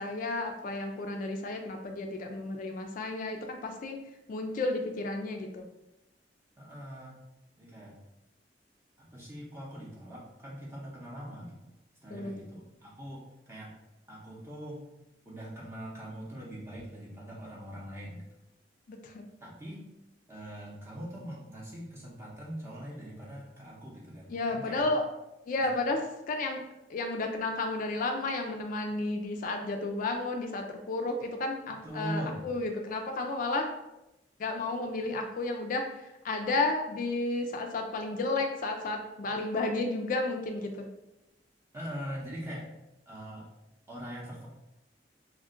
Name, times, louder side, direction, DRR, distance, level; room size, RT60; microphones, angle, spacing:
voice 1, 0.0-4.0 4.3-5.6 12.1-12.3 18.9-19.2 24.3-25.0 25.5-26.0 26.3-26.6 26.9-33.7 34.4-40.9, left 2 dB, 50° left, 3 dB, 0.3 m, -32 dB
voice 2, 6.6-7.2 7.6-8.0 9.0-11.7 12.0-13.7 14.1-14.9 15.3-18.3 19.4-19.8 20.3-24.8 31.8-32.5 41.7-42.7 43.1-43.5 43.9-44.5, equal, 15° right, -6 dB, 0.5 m, -42 dB
2.4 x 2.1 x 3.6 m, 0.92 s
head